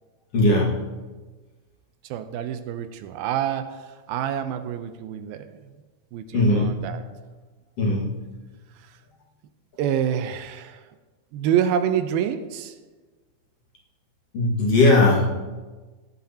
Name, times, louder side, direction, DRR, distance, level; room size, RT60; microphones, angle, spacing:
voice 1, 0.3-0.8 6.3-6.7 7.8-8.2 14.3-15.3, left 2 dB, 50° left, -3 dB, 2.5 m, -19 dB
voice 2, 2.0-5.8 6.1-7.0 8.8-9.0 9.8-10.9 11.3-12.8, right 9 dB, 85° right, 9 dB, 2.5 m, -27 dB
16.5 x 11.5 x 2.9 m, 1.3 s
omnidirectional pair, 4.3 m